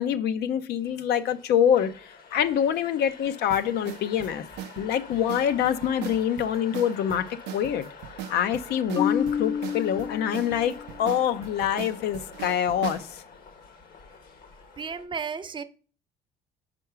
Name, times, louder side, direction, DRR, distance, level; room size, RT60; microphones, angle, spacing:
voice 1, 0.0-1.9 2.3-4.4 4.8-7.9 8.3-13.2, left 9 dB, 75° left, 0.6 m, -25 dB
sound 1, 0.8-15.1, left 5 dB, 60° left, 1.1 m, -47 dB
sound 2, 3.5-13.1, right 12 dB, 90° right, 0.4 m, -40 dB
Marimba xylophone, 9.0-11.0, left 7 dB, 25° left, 0.4 m, -29 dB
voice 2, 14.8-15.6, right 5 dB, 30° right, 0.6 m, -33 dB
5.2 x 4.6 x 5.6 m
cardioid pair, 110°, 17 cm